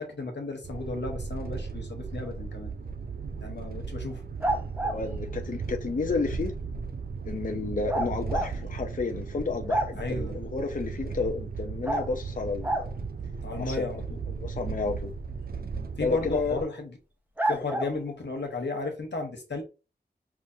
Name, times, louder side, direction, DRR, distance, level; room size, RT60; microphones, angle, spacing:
voice 1, 0.0-2.7 3.4-4.2 10.0-10.4 13.4-14.2 16.0-17.0 17.5-19.6, left 3 dB, 90° left, 1.0 m, -34 dB
sound 1, 0.6-16.7, right 5 dB, 60° right, 0.5 m, -36 dB
sound 2, 4.4-5.0 7.9-8.5 9.0-9.1 9.4-10.2 11.8-12.1 12.6-12.9 16.3-16.4 17.4-17.9, right 1 dB, 10° right, 0.6 m, -28 dB
voice 2, 4.8-6.5 7.3-12.9 13.6-13.9 14.3-15.1 16.0-16.6 17.5-17.6, left 4 dB, 50° left, 0.5 m, -31 dB
4.9 x 2.4 x 2.7 m
wide cardioid pair, 60°, 18 cm